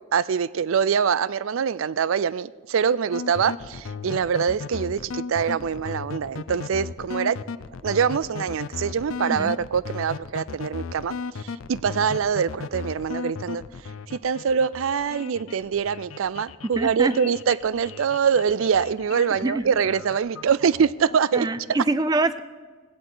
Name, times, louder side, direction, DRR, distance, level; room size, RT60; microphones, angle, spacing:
voice 1, 0.1-7.4 7.8-11.2 11.7-13.6 14.2-21.5, right 7 dB, 80° right, 19 dB, 0.4 m, -24 dB
sound 1, 3.1-21.2, left 5 dB, 85° left, 0.5 m, -36 dB
voice 2, 16.8-17.2 19.4-19.6 21.3-22.4, right 2 dB, 20° right, 13 dB, 0.4 m, -24 dB
18.0 x 16.0 x 3.9 m, 1.4 s
head